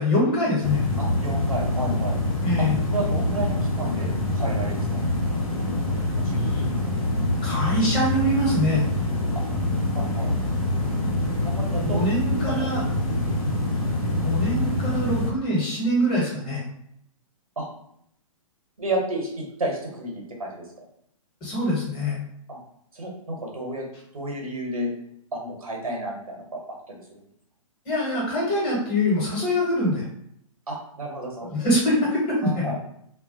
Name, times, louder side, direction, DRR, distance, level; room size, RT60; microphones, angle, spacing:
voice 1, 0.0-0.8 2.4-2.8 6.4-6.6 7.4-8.8 11.8-12.8 14.1-16.6 21.4-22.2 27.8-30.0 31.4-32.7, equal, 25° left, -5 dB, 1.0 m, -24 dB
sound 1, 0.6-15.3, left 1 dB, 85° left, 0.8 m, -25 dB
voice 2, 1.0-2.2 2.9-5.0 6.2-6.4 9.3-9.5 9.9-10.3 11.3-12.0 12.6-12.7 17.6-17.7 18.8-20.6 22.5-22.6 22.9-23.9 24.1-24.9 25.3-27.2 30.7-31.5 32.4-32.8, right 1 dB, 80° right, -1 dB, 0.9 m, -31 dB
2.2 x 2.1 x 2.6 m, 0.71 s
figure-of-eight pair, 120°, 18 cm